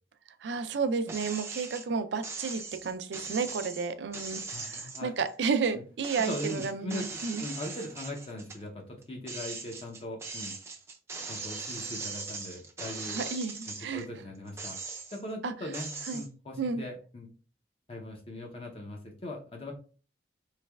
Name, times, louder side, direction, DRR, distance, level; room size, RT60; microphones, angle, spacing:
voice 1, 0.4-7.4 13.1-14.0 15.4-15.5 16.1-16.2 16.6-16.8, right 5 dB, 85° right, 0.4 m, -32 dB
sound 1, 1.1-1.8 2.2-5.7 6.0-8.6 9.0-14.0 14.5-15.3 15.7-16.3, right 4 dB, 15° right, 0.4 m, -40 dB
voice 2, 4.5-5.2 5.7-5.8 6.3-7.1 7.4-10.5 11.3-13.2 13.7-14.8 15.1-17.3 17.9-19.7, left 1 dB, 30° left, 0.6 m, -40 dB
3.9 x 3.2 x 2.2 m
head